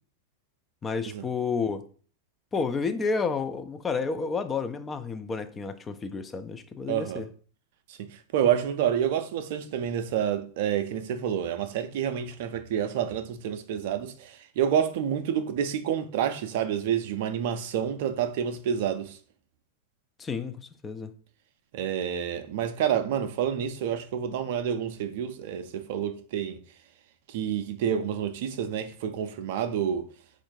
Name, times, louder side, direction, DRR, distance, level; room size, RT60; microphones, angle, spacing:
voice 1, 0.8-1.9 2.5-7.3 20.2-20.6 20.8-21.1, left 5 dB, 20° left, 0.4 m, -30 dB
voice 2, 6.9-7.2 8.0-19.2 21.7-26.6 27.3-30.1, right 9 dB, 50° right, 0.5 m, -28 dB
4.3 x 2.5 x 4.3 m
figure-of-eight pair, 90°, 0 cm